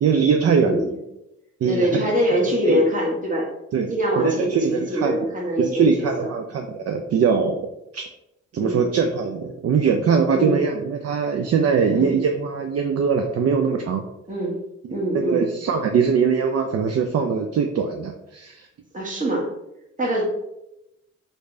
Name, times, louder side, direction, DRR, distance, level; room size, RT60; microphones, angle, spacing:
voice 1, 0.0-0.8 1.6-2.1 2.7-2.8 3.7-3.9 4.2-5.2 5.6-7.7 7.9-8.0 8.5-14.0 14.8-18.7, right 6 dB, 55° right, 4 dB, 0.4 m, -22 dB
voice 2, 0.6-1.0 1.6-3.5 3.9-6.3 8.6-8.8 10.3-10.6 11.9-12.1 14.3-14.6 14.9-15.5 18.9-19.5 20.0-20.2, equal, 25° right, -4 dB, 1.5 m, -23 dB
3.2 x 2.7 x 3.2 m, 0.88 s
supercardioid pair, 45°, 30 cm